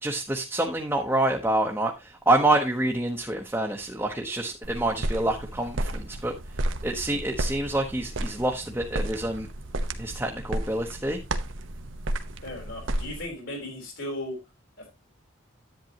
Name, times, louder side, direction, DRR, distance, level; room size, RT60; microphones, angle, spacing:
voice 1, 0.0-6.3 6.8-9.5 10.0-11.2, right 1 dB, 10° right, 0 dB, 0.9 m, -27 dB
sound 1, 4.6-13.3, right 1 dB, 70° right, 1.0 m, -32 dB
voice 2, 12.4-14.4 14.8-14.9, left 1 dB, 70° left, 1 dB, 4.1 m, -36 dB
10.5 x 9.0 x 2.9 m, 0.23 s
head